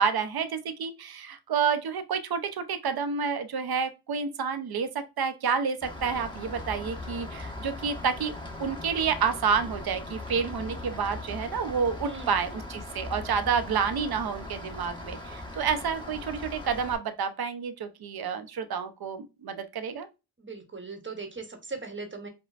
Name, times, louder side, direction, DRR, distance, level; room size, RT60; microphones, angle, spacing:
voice 1, 0.0-8.3 8.6-20.1, right 6 dB, 55° right, 0.7 m, -29 dB
Rain, 5.8-17.0, left 2 dB, 10° left, 1.2 m, -39 dB
voice 2, 20.4-22.3, right 4 dB, 25° right, 1.0 m, -39 dB
5.1 x 2.2 x 2.4 m
cardioid pair, 70°, 44 cm